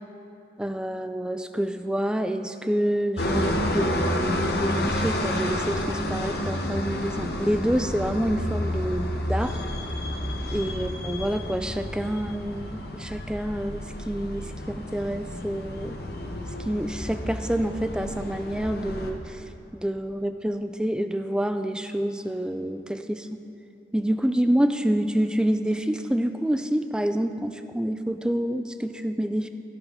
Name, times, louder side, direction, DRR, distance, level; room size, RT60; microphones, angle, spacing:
voice 1, 0.6-9.6 10.5-16.0 16.7-19.4 19.7-23.3 23.9-29.5, right 1 dB, 5° right, 8 dB, 0.3 m, -27 dB
sound 1, 3.2-19.1, left 1 dB, 60° left, 0.9 m, -30 dB
12.5 x 11.5 x 3.6 m, 2.8 s
head